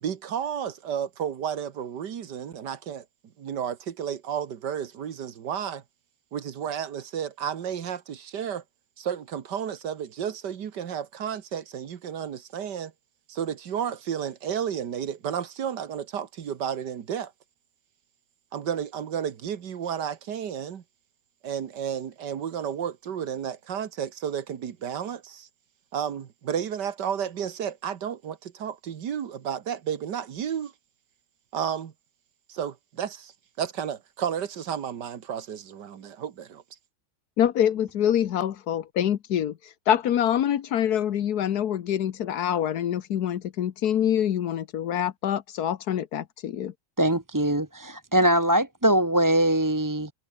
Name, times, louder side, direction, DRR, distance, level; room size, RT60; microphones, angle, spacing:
voice 1, 0.0-3.0 3.4-5.8 6.3-8.6 9.0-12.9 13.3-17.3 18.5-20.8 21.4-25.5 25.9-30.7 31.5-31.9 32.5-33.3 33.6-36.6, right 8 dB, 90° right, 2.0 m, -32 dB
voice 2, 37.4-39.5 39.9-46.7, left 10 dB, 70° left, 1.4 m, -25 dB
voice 3, 47.0-50.1, right 1 dB, 10° right, 1.4 m, -22 dB
omnidirectional pair, 1.8 m